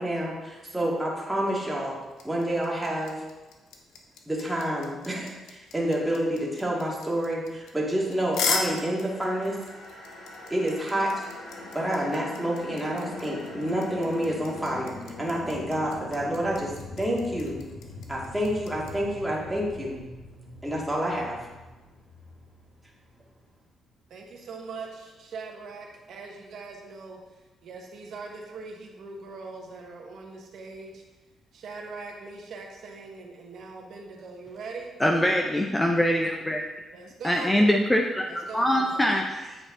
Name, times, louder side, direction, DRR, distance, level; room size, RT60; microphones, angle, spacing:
voice 1, 0.0-2.0 2.2-3.2 4.3-9.6 10.5-11.2 11.7-16.7 17.0-17.6 18.1-20.0 20.6-21.4, right 1 dB, 10° right, -4 dB, 2.0 m, -28 dB
sound 1, 2.1-18.9, left 5 dB, 85° left, 0.8 m, -36 dB
sound 2, 8.2-23.4, left 2 dB, 65° left, 2.3 m, -43 dB
voice 2, 24.1-31.0 31.5-34.9 36.9-37.5 38.2-39.1, right 4 dB, 70° right, 1 dB, 1.3 m, -41 dB
voice 3, 35.0-36.6 37.2-38.2 38.5-39.6, equal, 10° left, 1 dB, 0.6 m, -23 dB
8.6 x 5.2 x 3.8 m, 1.2 s
cardioid pair, 90°, 0 cm